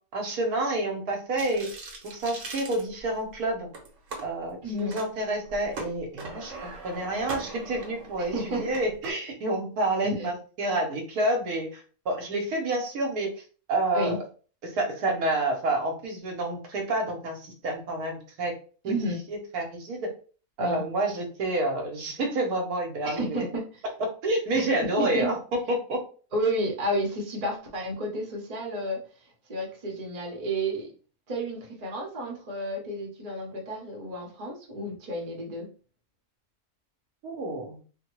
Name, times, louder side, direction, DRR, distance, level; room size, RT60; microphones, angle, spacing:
voice 1, 0.1-1.7 2.0-3.7 4.2-13.3 13.7-14.2 14.6-18.5 18.8-19.0 19.3-20.1 20.6-23.5 24.2-25.4 25.7-26.0 37.2-37.8, right 2 dB, 80° right, 2 dB, 1.3 m, -29 dB
sound 1, 1.4-3.3 3.7-4.2 4.8-5.1 5.4-9.1, right 3 dB, 60° right, 1.2 m, -40 dB
voice 2, 4.6-4.9 8.2-8.6 10.0-10.3 13.9-14.2 18.9-19.2 20.6-20.8 23.0-23.6 24.5-24.6 25.0-25.3 26.3-29.0 29.5-30.9 31.3-35.7, right 1 dB, 30° right, 0 dB, 0.8 m, -31 dB
3.4 x 2.2 x 3.0 m, 0.39 s
omnidirectional pair, 1.6 m